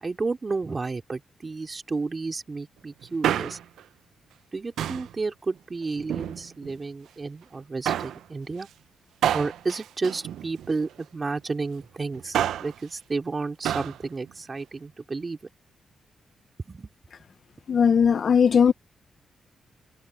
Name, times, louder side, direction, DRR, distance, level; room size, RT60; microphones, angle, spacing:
voice 1, 0.0-3.6 4.5-8.7 9.3-15.4 16.7-16.9, right 3 dB, 35° right, 3.1 m, -31 dB
Male speech man speaking, 3.0-3.8 4.8-5.1 6.0-6.8 7.8-8.2 9.2-10.9 12.1-12.8 13.6-14.0 14.3-14.4, right 10 dB, 90° right, 0.5 m, -28 dB
voice 2, 17.7-18.7, left 7 dB, 55° left, 0.6 m, -18 dB
cardioid pair, 80°, 0 cm